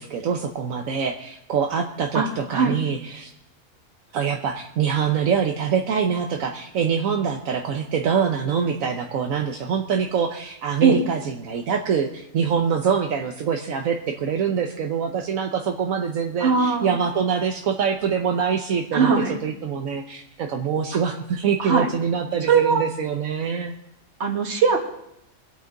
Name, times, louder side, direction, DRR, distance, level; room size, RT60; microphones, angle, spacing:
voice 1, 0.0-3.3 4.1-19.1 19.4-23.7, right 7 dB, 80° right, 3 dB, 1.3 m, -24 dB
voice 2, 2.1-2.8 10.8-11.0 16.4-16.9 18.9-19.3 21.6-21.9 22.5-22.9 24.2-24.8, right 5 dB, 55° right, 2 dB, 2.0 m, -20 dB
24.5 x 8.4 x 3.9 m, 0.81 s
omnidirectional pair, 1.4 m